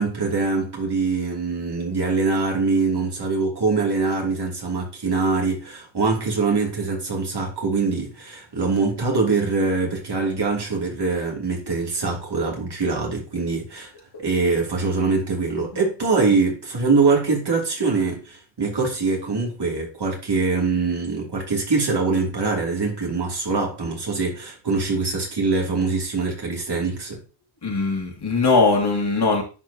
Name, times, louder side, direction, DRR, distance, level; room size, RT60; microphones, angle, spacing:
voice 1, 0.0-13.9 14.2-27.2, right 4 dB, 60° right, 2.9 m, -23 dB
voice 2, 27.6-29.4, left 3 dB, 55° left, 2.7 m, -20 dB
10.5 x 4.6 x 2.9 m
wide cardioid pair, 90°, 46 cm